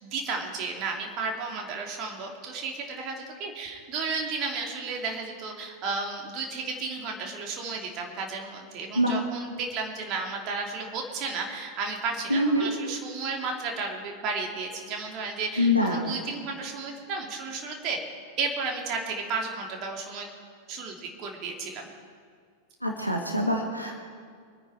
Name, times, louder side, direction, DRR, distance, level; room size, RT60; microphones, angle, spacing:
voice 1, 0.0-18.0 18.4-20.3 20.7-21.9, right 4 dB, 40° right, 1 dB, 2.8 m, -33 dB
voice 2, 12.3-12.7 15.6-16.1 22.8-23.9, left 1 dB, 90° right, 1 dB, 1.6 m, -24 dB
25.0 x 9.8 x 4.9 m, 2.1 s
figure-of-eight pair, 90°, 0 cm